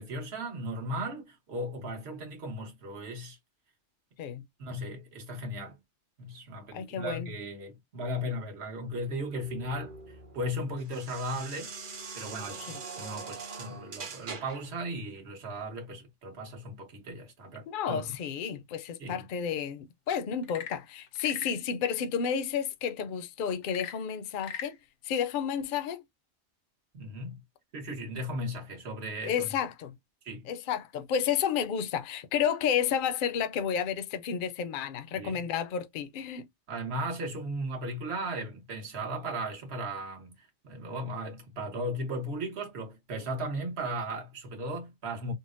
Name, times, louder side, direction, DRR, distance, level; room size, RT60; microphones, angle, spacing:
voice 1, 0.0-3.4 4.6-5.8 6.2-11.7 12.1-18.1 19.0-19.3 26.9-27.4 27.7-29.5 30.2-30.5 35.1-35.4 36.7-45.3, right 1 dB, 65° right, 1.3 m, -36 dB
voice 2, 6.7-7.3 12.7-12.8 17.7-24.8 25.0-26.0 29.2-30.0 30.5-36.4, left 8 dB, 55° left, 0.6 m, -31 dB
sound 1, 8.9-14.7, right 4 dB, 50° right, 0.9 m, -43 dB
Frog / Percussion / Wood, 20.3-21.6 23.6-24.8, left 8 dB, 90° left, 1.0 m, -41 dB
3.8 x 2.1 x 2.5 m
omnidirectional pair, 1.2 m